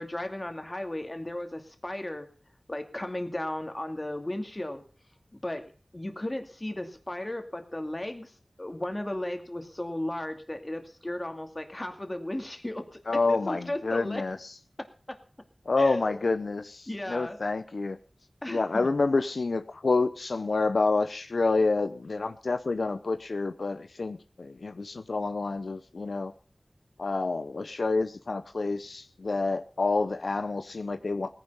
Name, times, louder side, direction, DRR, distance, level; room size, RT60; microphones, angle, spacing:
voice 1, 0.0-2.3 2.7-4.8 5.3-14.2 14.8-15.2 15.8-16.3 16.9-17.4 18.4-18.9, left 1 dB, 30° left, 6 dB, 2.4 m, -35 dB
voice 2, 13.1-14.5 15.7-18.0 18.5-26.3 27.0-31.3, left 3 dB, 85° left, 10 dB, 0.8 m, -28 dB
18.0 x 10.0 x 5.5 m, 0.39 s
wide cardioid pair, 65°, 0 cm